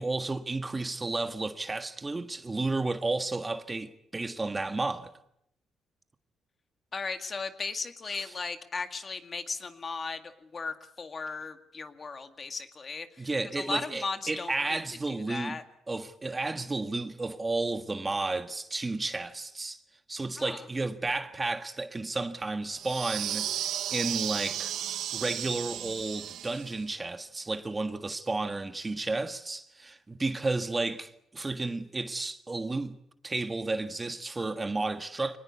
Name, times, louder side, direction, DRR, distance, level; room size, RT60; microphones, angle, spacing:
voice 1, 0.0-5.1 8.2-8.3 13.2-15.6 15.9-19.8 20.1-24.7 25.1-33.0 33.2-35.4, right 3 dB, 20° right, 1.5 m, -32 dB
voice 2, 6.9-14.8 15.1-15.6 20.4-20.6, left 4 dB, 35° left, 2.0 m, -37 dB
Sci-fi twinkle, 22.7-26.8, right 11 dB, 75° right, 0.9 m, -34 dB
24.0 x 19.5 x 8.3 m
cardioid pair, 90°, 0 cm